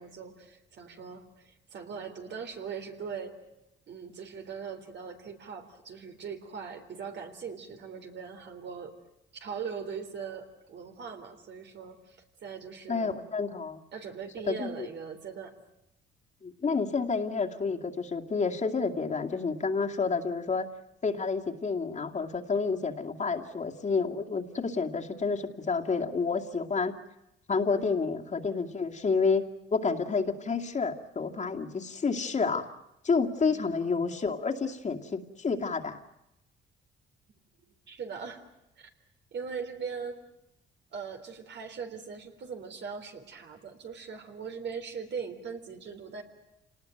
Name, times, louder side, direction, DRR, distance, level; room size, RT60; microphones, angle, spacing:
voice 1, 0.0-3.3 3.9-8.9 9.3-13.2 13.9-15.5 27.8-28.0 33.5-33.8 37.9-38.4 38.8-38.9 39.3-40.2 40.9-46.2, right 6 dB, 60° right, 5 dB, 3.7 m, -40 dB
voice 2, 12.9-13.8 14.5-14.9 16.4-20.7 21.0-26.9 27.5-29.5 29.7-32.7 33.0-36.0, left 4 dB, 35° left, 2 dB, 2.4 m, -29 dB
27.0 x 19.5 x 9.1 m, 0.88 s
cardioid pair, 90°, 20 cm